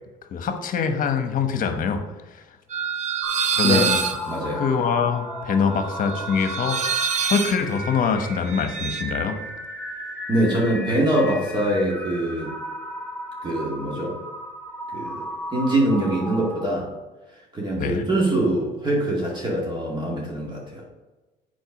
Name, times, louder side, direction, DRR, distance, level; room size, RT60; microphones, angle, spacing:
voice 1, 0.3-2.0 2.3-2.4 3.5-4.0 4.6-6.8 7.2-9.4 17.8-18.1, left 6 dB, 55° left, 7 dB, 1.1 m, -24 dB
sound 1, 2.7-9.0, right 7 dB, 45° right, 0.8 m, -27 dB
sound 2, 3.2-16.6, left 1 dB, 10° left, 0.9 m, -35 dB
voice 2, 4.2-4.6 10.3-12.5 13.4-14.2 14.9-15.2 15.5-16.9 17.5-20.8, right 1 dB, 25° right, -3 dB, 2.3 m, -23 dB
7.8 x 4.6 x 5.9 m, 1.2 s
cardioid pair, 110°, 17 cm